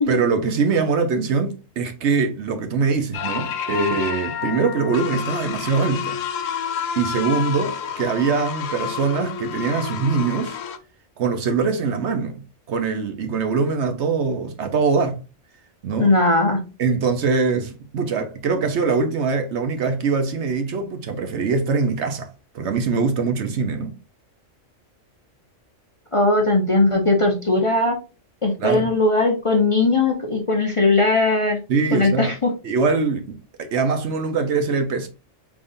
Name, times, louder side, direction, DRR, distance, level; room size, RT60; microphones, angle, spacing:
voice 1, 0.1-6.2 7.0-10.6 11.2-15.2 15.8-16.2 16.8-22.3 22.5-23.9 28.6-28.9 31.7-32.3 32.6-35.1, right 4 dB, 65° right, 1.0 m, -23 dB
sound 1, 3.1-10.8, left 8 dB, 85° left, 1.0 m, -29 dB
voice 2, 16.0-16.6 26.1-28.0 28.4-31.6 31.9-32.5, left 2 dB, 35° left, 0.6 m, -19 dB
5.1 x 3.5 x 2.6 m
omnidirectional pair, 1.3 m